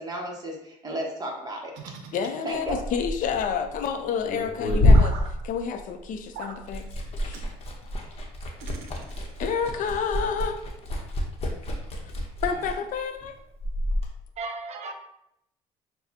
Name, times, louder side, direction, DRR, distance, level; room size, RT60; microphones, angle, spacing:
voice 1, 0.0-1.9 2.4-2.8, right 1 dB, 25° right, 0 dB, 1.1 m, -34 dB
sound 1, 1.7-2.9 4.9-5.3 6.3-6.6 7.3-7.5 8.6-9.5, right 5 dB, 85° right, 0.6 m, -42 dB
voice 2, 2.1-5.2 5.4-6.9 7.2-7.5 9.4-10.6 12.4-13.4, left 6 dB, 60° left, 6 dB, 0.6 m, -29 dB
Liquid, 2.5-6.2 6.5-14.1, left 1 dB, 40° left, 0.9 m, -26 dB
voice 3, 14.4-14.9, right 3 dB, 45° right, 5 dB, 0.7 m, -36 dB
6.5 x 2.2 x 2.8 m, 0.78 s
cardioid pair, 95°, 15 cm